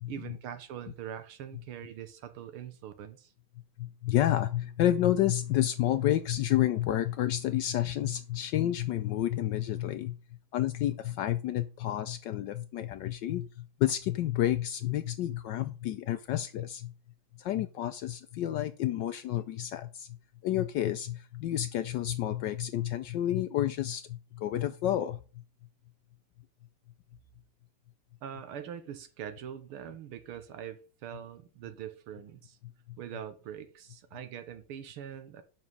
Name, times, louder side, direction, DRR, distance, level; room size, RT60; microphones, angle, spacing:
voice 1, 0.1-3.3 28.2-32.6 33.0-35.4, right 9 dB, 85° right, 1.9 m, -43 dB
voice 2, 3.8-10.2 10.5-16.9 17.4-20.1 20.4-25.2, left 12 dB, 75° left, 1.0 m, -30 dB
7.4 x 6.1 x 5.5 m
omnidirectional pair, 2.4 m